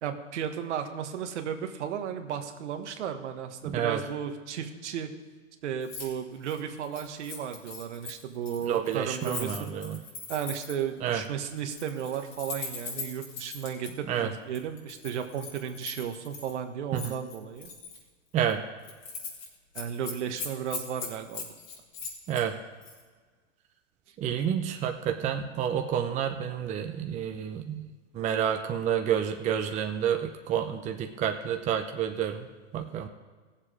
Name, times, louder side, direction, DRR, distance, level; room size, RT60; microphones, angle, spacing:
voice 1, 0.0-5.1 5.6-9.8 10.3-17.7 19.7-21.5, right 8 dB, 65° right, 6 dB, 1.4 m, -34 dB
voice 2, 3.6-4.0 8.7-10.0 11.0-11.2 14.1-14.3 16.9-17.1 18.3-18.6 22.3-22.5 24.2-27.9 28.1-32.5 32.7-33.1, right 9 dB, 20° right, 5 dB, 0.6 m, -29 dB
Keys jangling, 5.8-6.1 6.4-10.9 11.6-13.9 14.5-16.5 16.9-18.0 18.4-18.5 18.8-19.5 19.7-22.4 22.8-23.0, left 5 dB, 75° left, 3.7 m, -40 dB
17.0 x 7.4 x 4.9 m, 1.4 s
hypercardioid pair, 120°, 37 cm